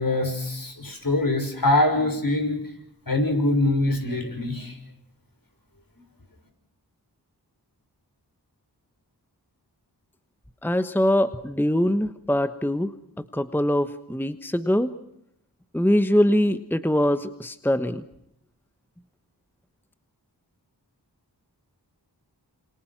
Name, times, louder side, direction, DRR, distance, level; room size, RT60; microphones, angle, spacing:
voice 1, 0.0-2.6 3.1-4.8, left 2 dB, 55° left, 5 dB, 6.4 m, -23 dB
voice 2, 10.6-12.9 13.3-14.9 15.7-18.0, equal, 5° left, 11 dB, 1.2 m, -23 dB
28.0 x 27.0 x 6.0 m, 0.77 s
wide cardioid pair, 55°, 40 cm